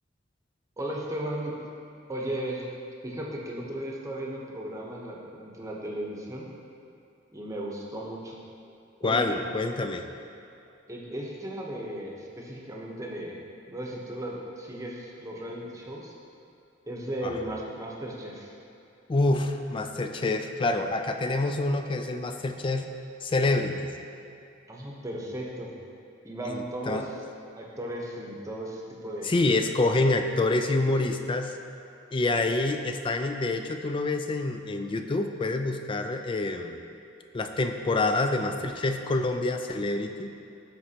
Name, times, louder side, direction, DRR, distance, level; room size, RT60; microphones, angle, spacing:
voice 1, 0.8-1.6 2.1-2.7 3.0-6.5 7.3-8.4 9.0-9.5 10.9-13.4 13.7-16.1 16.9-18.5 24.7-25.7 26.2-27.1 27.6-29.3, right 1 dB, 15° right, -2 dB, 0.9 m, -36 dB
voice 2, 9.0-10.1 17.2-17.4 19.1-22.8 23.2-23.9 26.5-27.1 29.2-31.6 32.1-36.8 37.3-40.3, left 2 dB, 25° left, 6 dB, 0.4 m, -27 dB
13.0 x 4.4 x 2.9 m, 2.7 s
head